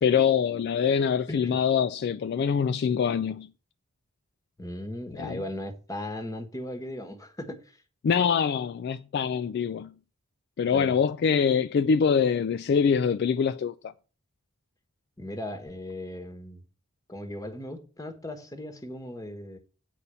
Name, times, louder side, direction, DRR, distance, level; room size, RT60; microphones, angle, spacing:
voice 1, 0.0-3.5 5.2-5.4 8.0-9.9 10.6-13.9, left 6 dB, 55° left, 0.3 m, -24 dB
voice 2, 1.3-1.6 4.6-7.6 10.7-11.0 15.2-16.6 17.1-19.6, left 1 dB, 15° left, 1.2 m, -37 dB
8.3 x 4.2 x 6.7 m
head